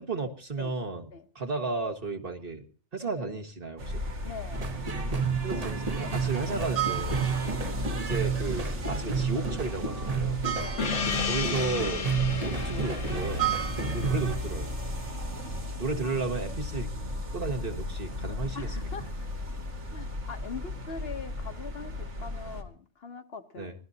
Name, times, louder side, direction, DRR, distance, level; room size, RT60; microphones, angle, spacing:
voice 1, 0.0-1.1 1.4-2.6 2.9-3.9 5.4-7.3 8.0-10.4 11.2-12.1 12.5-13.5 13.9-14.7 15.8-16.9 17.3-18.7 23.6-23.7, right 3 dB, 50° right, 4 dB, 1.9 m, -33 dB
sound 1, 3.8-22.6, right 1 dB, 80° right, 2.2 m, -34 dB
voice 2, 4.2-4.7 7.3-7.4 10.5-10.9 14.0-14.2 16.0-16.3 18.5-19.3 19.9-23.7, left 5 dB, 60° left, 8 dB, 1.3 m, -42 dB
sound 2, 4.5-14.4, right 5 dB, 35° right, 1.2 m, -31 dB
Gong, 10.8-15.8, left 7 dB, 75° left, 1.3 m, -35 dB
24.5 x 17.5 x 2.8 m, 0.43 s
omnidirectional pair, 1.2 m